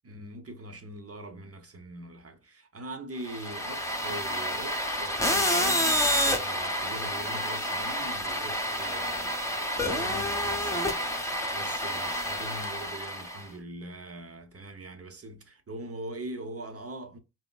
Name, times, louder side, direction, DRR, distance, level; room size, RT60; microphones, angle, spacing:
voice 1, 0.0-11.1 11.5-17.2, right 1 dB, 35° right, 0.7 m, -42 dB
sound 1, 3.3-13.5, equal, 10° left, 0.7 m, -29 dB
4.0 x 2.1 x 2.2 m
cardioid pair, 45°, 39 cm